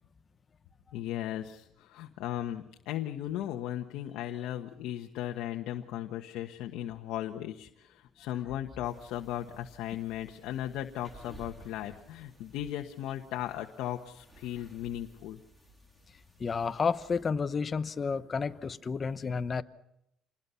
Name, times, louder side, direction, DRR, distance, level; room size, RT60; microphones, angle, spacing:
voice 1, 0.9-15.4, left 12 dB, 80° left, 1.3 m, -37 dB
sound 1, 8.8-17.3, right 1 dB, 5° right, 3.6 m, -56 dB
voice 2, 16.4-19.6, left 5 dB, 30° left, 0.9 m, -31 dB
27.5 x 21.0 x 5.7 m
cardioid pair, 130°, 0 cm